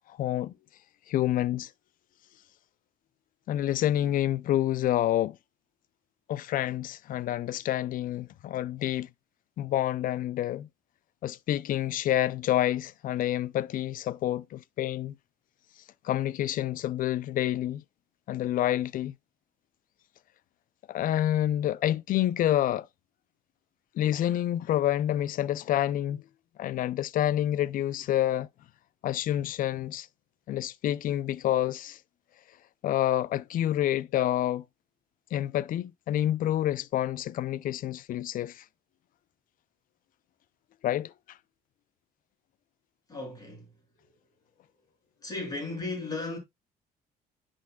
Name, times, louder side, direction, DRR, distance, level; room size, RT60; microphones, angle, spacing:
voice 1, 0.1-0.5 1.1-1.7 3.5-5.4 6.3-9.1 9.6-10.7 11.2-15.1 16.0-17.8 18.3-19.1 20.9-22.9 23.9-26.2 26.6-28.5 29.0-30.1 30.5-32.0 32.8-34.6 35.3-38.6 40.8-41.4, left 12 dB, 55° left, 0.4 m, -28 dB
voice 2, 43.1-43.8 45.2-46.4, left 3 dB, 20° left, 6.2 m, -35 dB
10.5 x 6.3 x 2.3 m
cardioid pair, 110°, 17 cm